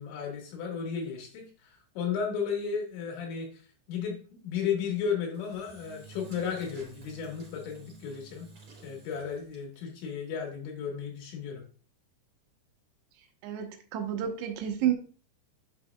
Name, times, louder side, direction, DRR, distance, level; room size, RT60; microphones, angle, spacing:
voice 1, 0.0-8.5 8.8-11.6, left 6 dB, 90° left, 1 dB, 4.1 m, -34 dB
Engine / Drill, 5.3-9.9, right 3 dB, 35° right, 2.9 m, -52 dB
voice 2, 13.4-14.9, right 10 dB, 80° right, 5 dB, 3.0 m, -30 dB
8.8 x 6.3 x 2.3 m, 0.38 s
omnidirectional pair, 5.1 m